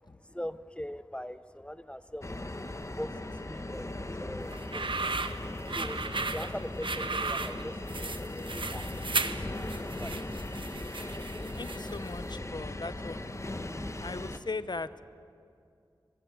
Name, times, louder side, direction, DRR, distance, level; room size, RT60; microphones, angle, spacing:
voice 1, 0.1-2.3 3.0-5.3 5.7-8.0 8.4-10.2, equal, 10° left, 14 dB, 0.7 m, -42 dB
sound 1, 2.2-14.4, left 1 dB, 35° left, 1.3 m, -38 dB
sound 2, 4.5-12.1, right 3 dB, 65° right, 1.1 m, -35 dB
voice 2, 11.6-13.2 14.0-15.0, left 3 dB, 55° left, 14 dB, 0.9 m, -38 dB
23.0 x 21.5 x 8.1 m, 2.4 s
wide cardioid pair, 50°, 9 cm